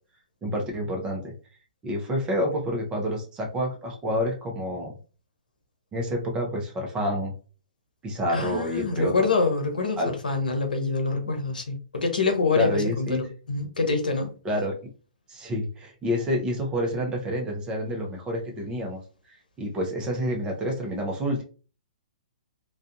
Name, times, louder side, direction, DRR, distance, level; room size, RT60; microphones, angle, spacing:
voice 1, 0.4-1.3 1.8-4.9 5.9-7.3 8.0-9.3 10.0-10.1 12.5-13.2 14.4-14.9 15.3-19.0 19.3-21.4, equal, 20° right, 0.7 m, -28 dB
voice 2, 8.3-10.0 10.2-14.3, left 4 dB, 85° left, 0.8 m, -25 dB
2.5 x 2.3 x 2.5 m
hypercardioid pair, 125°, 4 cm